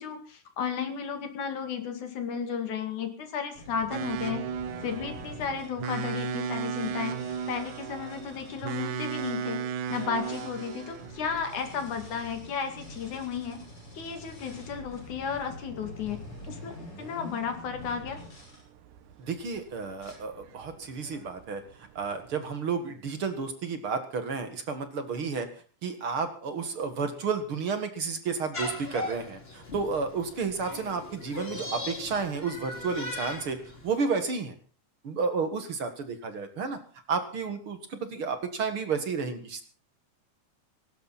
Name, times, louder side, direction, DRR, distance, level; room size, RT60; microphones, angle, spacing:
voice 1, 0.0-4.4 4.8-7.2 7.5-13.6 13.9-18.2, left 6 dB, 65° left, 6 dB, 3.6 m, -34 dB
sound 1, 3.6-9.4 9.8-18.6 19.3-19.6 20.0-20.1, left 1 dB, 40° left, 7.2 m, -47 dB
sound 2, 3.9-22.4, right 7 dB, 70° right, 2.4 m, -38 dB
voice 2, 19.2-21.6 22.0-25.5 25.8-33.6 33.8-34.5 35.0-36.8 37.1-39.6, right 5 dB, 45° right, 8 dB, 2.2 m, -31 dB
sound 3, 28.5-33.9, left 2 dB, 20° left, 2.5 m, -39 dB
18.5 x 16.5 x 4.2 m, 0.38 s
omnidirectional pair, 3.7 m